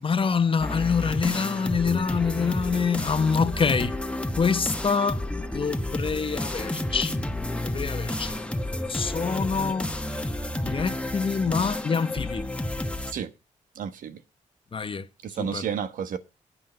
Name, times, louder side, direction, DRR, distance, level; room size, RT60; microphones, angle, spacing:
voice 1, 0.0-4.0 4.4-5.2 5.5-8.4 8.9-9.9 10.6-12.5 14.7-15.1 15.4-15.6, left 5 dB, 40° left, 0.9 m, -26 dB
sound 1, 0.6-13.1, left 1 dB, 10° left, 1.3 m, -31 dB
voice 2, 13.7-14.2 15.2-16.2, right 8 dB, 85° right, 1.2 m, -31 dB
9.5 x 5.6 x 7.6 m
cardioid pair, 70°, 14 cm